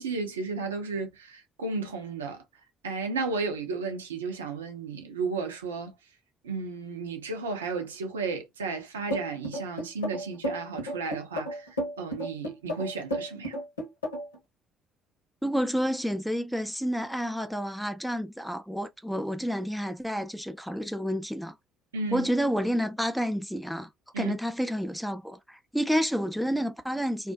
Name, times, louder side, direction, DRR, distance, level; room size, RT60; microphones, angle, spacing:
voice 1, 0.0-2.4 2.8-5.9 6.4-13.6 21.9-22.3 24.1-24.4, right 4 dB, 80° right, 0.5 m, -33 dB
sound 1, 9.1-14.4, equal, 80° left, 0.9 m, -32 dB
voice 2, 15.4-21.5 22.1-23.9 24.2-27.3, equal, ahead, 0.4 m, -29 dB
2.4 x 2.3 x 2.3 m
figure-of-eight pair, 50°, 0 cm